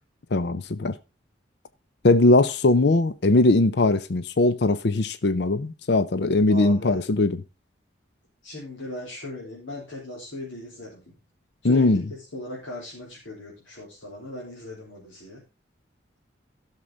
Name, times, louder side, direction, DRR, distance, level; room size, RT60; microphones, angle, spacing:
voice 1, 0.3-0.9 2.0-7.4 11.6-12.0, left 2 dB, 60° left, 0.6 m, -20 dB
voice 2, 6.5-7.0 8.4-11.1 11.6-15.4, left 1 dB, 85° left, 3.9 m, -38 dB
14.5 x 6.7 x 3.9 m
head